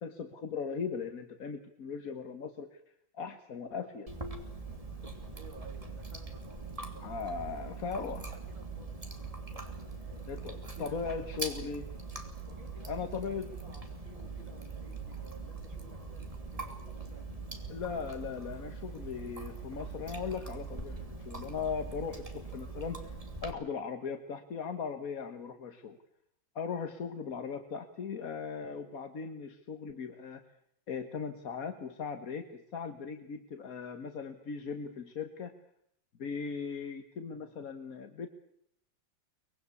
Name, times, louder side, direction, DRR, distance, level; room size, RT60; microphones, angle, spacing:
voice 1, 0.0-2.8 3.1-4.1 7.0-8.2 10.3-11.9 12.9-13.5 17.7-23.1 23.4-26.0 26.5-30.4 30.9-35.5 36.2-38.3, left 6 dB, 45° left, 7 dB, 1.7 m, -38 dB
Chewing mastication, 4.1-23.5, right 3 dB, 15° right, 2.9 m, -42 dB
voice 2, 5.3-7.4 7.9-9.0 9.5-11.0 12.5-17.3, right 3 dB, 70° right, 3 dB, 4.8 m, -56 dB
24.0 x 21.5 x 8.4 m, 0.71 s
omnidirectional pair, 2.2 m